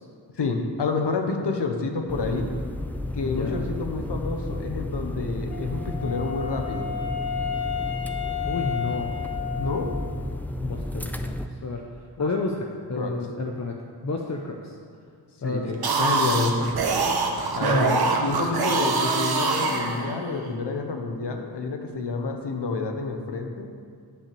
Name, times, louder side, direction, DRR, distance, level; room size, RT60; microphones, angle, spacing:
voice 1, 0.3-2.5 3.1-6.9 9.6-9.9 12.2-12.3 13.0-13.1 15.4-16.7 17.5-23.7, left 3 dB, 85° left, 4 dB, 1.2 m, -29 dB
sound 1, 2.1-11.5, left 1 dB, 5° left, 0.4 m, -32 dB
voice 2, 3.2-3.6 8.5-9.1 10.6-11.3 11.6-11.8 12.2-12.5 12.9-13.8 14.0-14.7 15.4-15.8 17.6-18.1, left 3 dB, 45° left, 1 dB, 0.8 m, -30 dB
Wind instrument woodwind instrument, 5.5-10.3, left 8 dB, 65° left, 0.9 m, -32 dB
sound 2, 15.7-20.4, right 4 dB, 65° right, 1.1 m, -24 dB
10.0 x 5.9 x 6.9 m, 2.2 s
wide cardioid pair, 135°, 40 cm